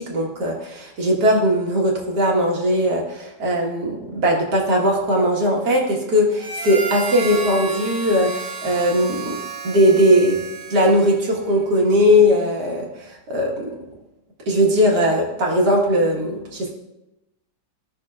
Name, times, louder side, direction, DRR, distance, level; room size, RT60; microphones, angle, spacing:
voice 1, 0.0-9.4 9.6-10.4 10.7-13.7 14.5-16.7, equal, 65° right, -1 dB, 2.1 m, -19 dB
Harmonica, 6.4-11.4, right 4 dB, 80° right, 1.7 m, -32 dB
16.5 x 6.0 x 2.4 m, 0.93 s
omnidirectional pair, 1.9 m